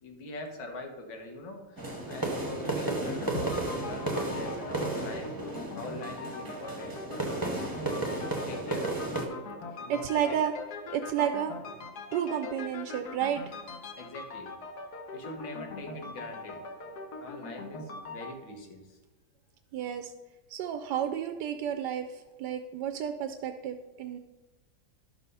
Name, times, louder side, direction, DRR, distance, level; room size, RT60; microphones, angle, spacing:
voice 1, 0.0-5.3 5.8-7.4 7.9-9.1 9.8-10.4 14.0-14.6 15.1-16.6 17.2-19.0 19.9-20.0, left 2 dB, 85° left, 3 dB, 2.2 m, -43 dB
sound 1, 1.8-9.3, right 2 dB, 15° right, 0.9 m, -33 dB
sound 2, 2.8-18.3, left 3 dB, 60° left, 1.3 m, -42 dB
voice 2, 9.9-10.5 10.9-11.8 12.1-13.5 19.7-20.1 20.5-24.2, right 9 dB, 75° right, 7 dB, 1.1 m, -31 dB
11.5 x 4.5 x 5.4 m, 1.2 s
omnidirectional pair, 2.1 m